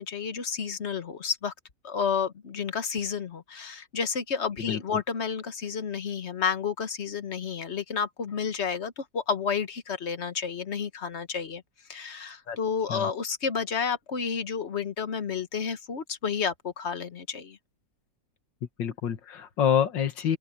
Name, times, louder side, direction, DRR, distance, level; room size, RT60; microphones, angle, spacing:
voice 1, 0.0-1.5 1.8-11.6 11.9-17.6, left 6 dB, 40° left, 1.3 m, -31 dB
voice 2, 18.8-20.4, left 9 dB, 90° left, 2.2 m, -26 dB
open air
omnidirectional pair, 1.9 m